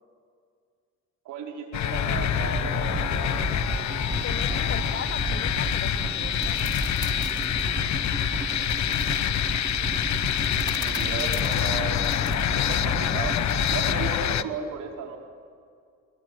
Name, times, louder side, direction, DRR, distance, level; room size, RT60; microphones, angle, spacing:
voice 1, 1.2-3.3 10.4-13.3 13.7-15.2, right 5 dB, 85° right, 0 dB, 5.0 m, -35 dB
sound 1, 1.7-14.4, left 11 dB, 65° left, 1.1 m, -26 dB
sound 2, 2.1-14.2, right 4 dB, 20° right, 0.7 m, -34 dB
voice 2, 4.2-6.6, left 8 dB, 45° left, 18 dB, 0.8 m, -38 dB
sound 3, 6.3-7.7 8.6-9.3 10.3-12.5 13.5-13.8, left 2 dB, 15° left, 2.9 m, -42 dB
23.0 x 23.0 x 9.4 m, 2.2 s
cardioid pair, 90°, 30 cm